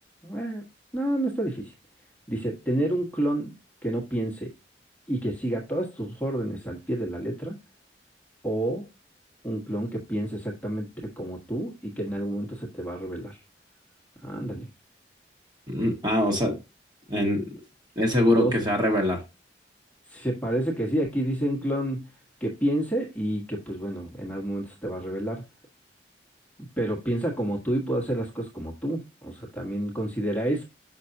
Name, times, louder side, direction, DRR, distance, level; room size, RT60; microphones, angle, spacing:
voice 1, 0.2-0.6 0.9-1.7 2.3-3.5 3.8-4.5 5.1-7.6 8.4-8.9 9.4-13.4 14.2-14.7 18.3-18.5 20.1-22.1 22.4-25.4 26.8-30.6, right 1 dB, 10° left, 1.3 m, -29 dB
voice 2, 15.7-16.6 17.1-17.5 18.0-19.2, left 1 dB, 25° right, 1.6 m, -23 dB
6.5 x 5.7 x 2.7 m
head